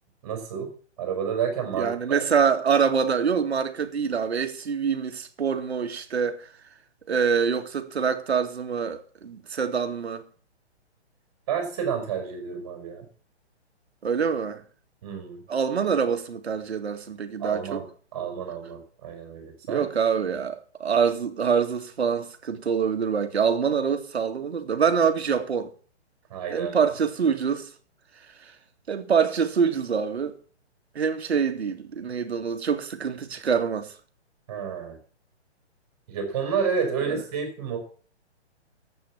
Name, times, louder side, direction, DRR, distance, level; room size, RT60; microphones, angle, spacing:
voice 1, 0.2-0.7 1.0-2.2 11.5-13.0 15.0-15.4 17.4-17.8 18.1-19.9 26.3-26.9 34.5-35.0 36.1-37.8, right 6 dB, 25° right, 4.6 m, -30 dB
voice 2, 1.8-6.4 7.1-10.2 14.0-14.6 15.5-17.8 19.7-25.7 26.5-27.7 28.9-30.4 31.0-33.9 37.1-37.2, right 6 dB, 65° right, 2.2 m, -25 dB
11.5 x 8.5 x 7.1 m
hypercardioid pair, 175°, 34 cm